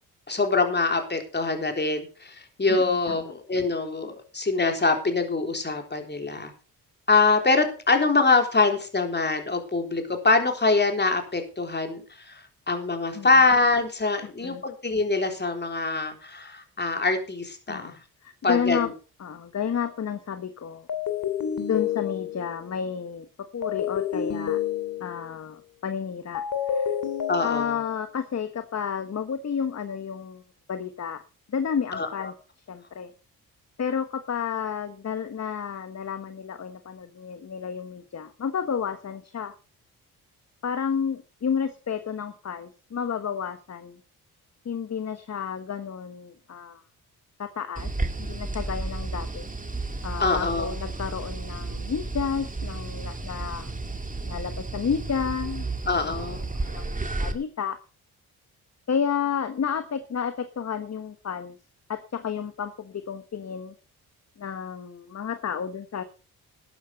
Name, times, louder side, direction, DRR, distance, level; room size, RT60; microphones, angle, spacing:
voice 1, 0.3-6.5 7.1-18.0 18.4-18.9 27.3-27.8 31.9-32.3 50.2-50.8 55.9-56.4, left 3 dB, 25° left, 5 dB, 3.7 m, -24 dB
voice 2, 2.7-3.2 13.1-13.3 14.2-14.6 17.7-18.9 19.2-20.9 21.7-24.6 25.0-27.0 27.4-30.4 30.7-31.2 31.5-32.3 32.7-33.1 33.8-39.5 40.6-44.0 44.6-46.8 47.4-47.9 48.2-49.5 50.0-53.7 54.2-55.7 55.9-56.2 56.6-56.9 57.2-57.8 58.9-61.5 61.9-63.7 64.4-66.0, left 7 dB, 45° left, 10 dB, 1.3 m, -31 dB
sound 1, 19.6-19.9 20.9-22.6 23.6-25.3 26.3-28.0, left 9 dB, 60° left, 2.5 m, -29 dB
sound 2, 47.8-57.3, right 3 dB, 20° right, 2.2 m, -32 dB
12.5 x 9.8 x 5.3 m, 0.36 s
supercardioid pair, 60°, 38 cm